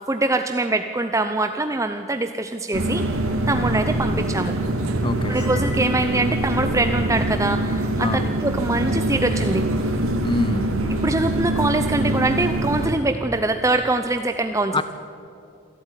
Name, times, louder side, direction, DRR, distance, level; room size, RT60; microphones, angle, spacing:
voice 1, 0.1-3.0 3.5-4.5 5.3-9.7 11.0-14.8, right 2 dB, 15° right, 7 dB, 0.6 m, -23 dB
sound 1, 2.7-12.9, right 1 dB, 70° right, 2.6 m, -24 dB
voice 2, 5.0-5.4 8.0-8.3 10.2-10.7 14.7-14.8, left 2 dB, 20° left, 13 dB, 0.9 m, -25 dB
Cymbal, 5.2-6.7, left 2 dB, 80° left, 3.6 m, -41 dB
27.5 x 12.5 x 9.9 m, 2.7 s
head